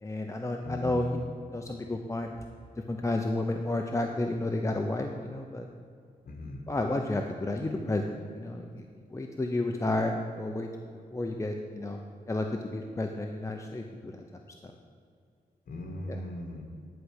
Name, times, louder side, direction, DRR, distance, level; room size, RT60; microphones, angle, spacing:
voice 1, 0.0-1.2 1.5-2.4 2.9-5.7 6.7-10.7 11.1-12.0 12.3-14.7 16.1-16.2, left 2 dB, 20° left, 3 dB, 0.7 m, -31 dB
voice 2, 0.6-1.2 6.3-6.7 15.7-16.6, left 1 dB, 60° left, 2 dB, 1.8 m, -39 dB
11.0 x 4.9 x 8.1 m, 2.3 s
cardioid pair, 100°, 16 cm